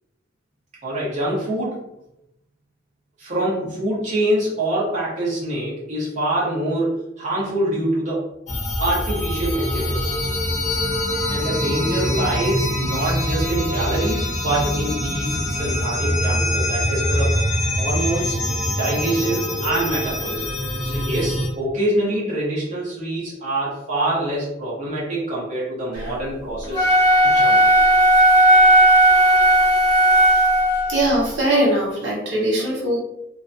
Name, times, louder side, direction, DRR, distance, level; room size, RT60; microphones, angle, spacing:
voice 1, 0.8-1.9 3.2-8.3 8.8-10.2 11.3-17.4 17.8-18.4 18.8-20.5 20.8-26.8 27.2-27.8, right 1 dB, 40° right, -7 dB, 0.7 m, -25 dB
sound 1, 8.5-21.5, left 1 dB, 40° left, 0.7 m, -24 dB
Wind instrument woodwind instrument, 26.6-31.0, right 1 dB, 20° right, 1.1 m, -15 dB
voice 2, 30.9-33.0, right 1 dB, 70° right, -4 dB, 0.9 m, -20 dB
2.5 x 2.1 x 2.5 m, 0.85 s
head